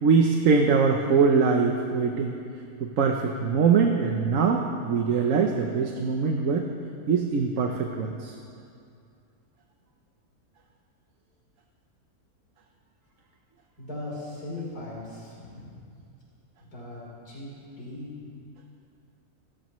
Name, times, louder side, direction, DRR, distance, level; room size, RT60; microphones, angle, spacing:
voice 1, 0.0-2.3 2.8-6.7 7.1-8.3, right 5 dB, 65° right, 2 dB, 1.2 m, -22 dB
voice 2, 13.8-15.8 16.6-17.5 17.8-18.2, left 2 dB, 80° left, -7 dB, 4.4 m, -39 dB
27.0 x 13.5 x 3.2 m, 2.4 s
omnidirectional pair, 1.5 m